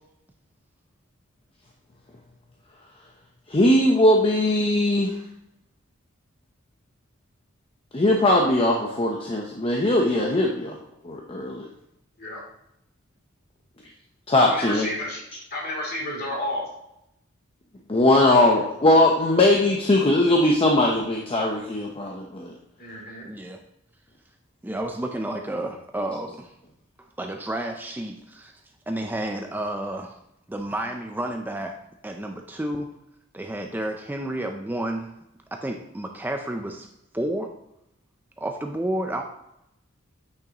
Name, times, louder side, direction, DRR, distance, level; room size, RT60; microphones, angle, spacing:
voice 1, 3.5-5.2 7.9-10.8 11.0-11.7 14.3-14.9 17.9-22.5, left 1 dB, 25° left, -1 dB, 0.7 m, -20 dB
voice 2, 14.4-15.2 15.5-16.6 22.8-23.3, left 1 dB, 50° left, -3 dB, 2.8 m, -30 dB
voice 3, 23.2-23.6 24.6-26.5 27.0-28.6 28.9-30.2 30.5-31.8 32.0-32.9 33.3-35.1 35.5-36.9 37.1-37.5 38.4-39.2, right 1 dB, 10° right, 3 dB, 0.4 m, -31 dB
8.9 x 6.2 x 2.9 m, 0.82 s
head